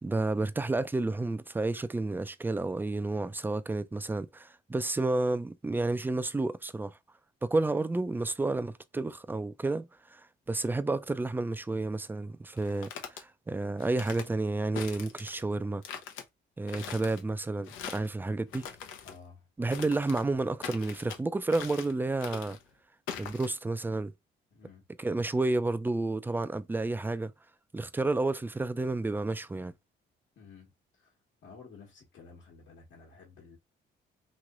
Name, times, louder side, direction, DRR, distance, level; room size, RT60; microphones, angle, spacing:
voice 1, 0.0-7.0 7.4-15.8 16.6-18.7 19.6-22.6 23.2-24.1 25.0-27.3 27.7-29.7, right 2 dB, 10° right, 0.3 m, -31 dB
sound 1, 12.6-13.2 13.8-14.3 14.8-15.4 15.8-16.2 16.7-17.2 17.6-18.1 18.5-19.2 19.7-20.3 20.6-21.2 21.5-21.9 22.2-22.6 23.1-23.5, left 8 dB, 90° left, 0.7 m, -42 dB
voice 2, 16.7-17.0 19.0-19.5 24.5-24.9 30.4-31.1 31.4-33.6, left 5 dB, 70° left, 1.2 m, -53 dB
3.0 x 2.9 x 2.4 m
cardioid pair, 90°, 20 cm